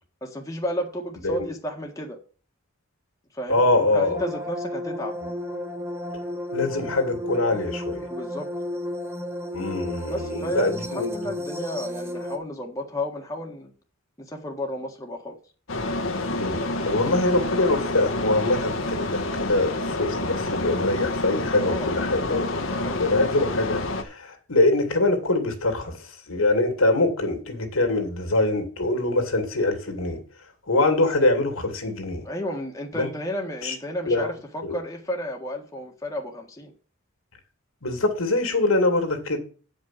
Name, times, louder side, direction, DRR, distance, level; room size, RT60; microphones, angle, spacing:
voice 1, 0.2-2.2 3.3-5.2 8.1-8.5 10.1-13.7 14.2-15.4 18.8-19.0 21.6-23.1 32.2-36.7, left 1 dB, 15° left, 0 dB, 1.6 m, -32 dB
voice 2, 3.5-4.2 6.5-8.0 9.5-11.3 16.3-22.5 23.0-25.9 26.3-30.2 30.7-32.2 32.9-33.1 33.6-33.7 34.1-34.3 34.6-34.8 37.8-39.4, left 2 dB, 85° left, 5 dB, 2.5 m, -24 dB
sound 1, 4.1-12.4, left 1 dB, 10° right, 1.0 m, -32 dB
sound 2, 15.7-24.0, left 2 dB, 70° left, 1.3 m, -28 dB
9.0 x 5.3 x 7.4 m, 0.39 s
head